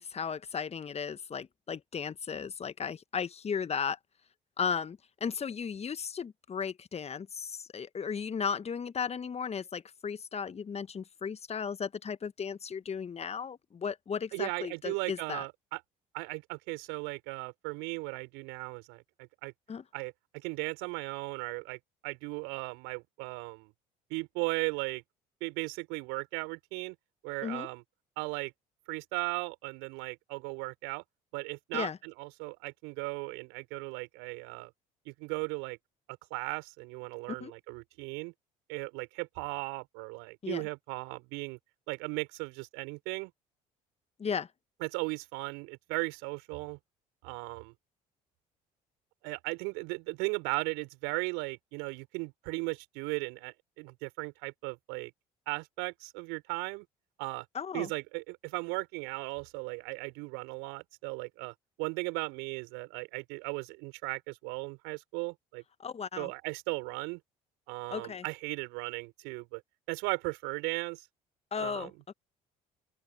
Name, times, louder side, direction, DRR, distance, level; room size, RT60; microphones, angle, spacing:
voice 1, 0.0-4.0 4.6-15.4 19.7-19.8 27.4-27.7 31.7-32.0 37.4-37.5 40.4-40.6 44.2-44.5 57.5-57.9 65.8-66.3 67.9-68.2 71.5-71.9, left 6 dB, 35° left, 1.4 m, -35 dB
voice 2, 14.3-15.8 16.1-19.5 19.9-23.7 24.1-25.0 25.4-27.0 27.2-27.8 28.2-28.5 28.9-31.0 31.3-34.7 35.1-35.8 36.3-38.3 38.7-41.6 41.9-43.3 44.8-46.8 47.2-47.7 49.2-55.1 55.5-56.9 57.2-57.5 57.7-65.6 66.2-67.2 67.7-69.6 69.9-71.1 71.6-71.9, right 29 dB, 70° right, 5.4 m, -37 dB
open air
hypercardioid pair, 60°, 19 cm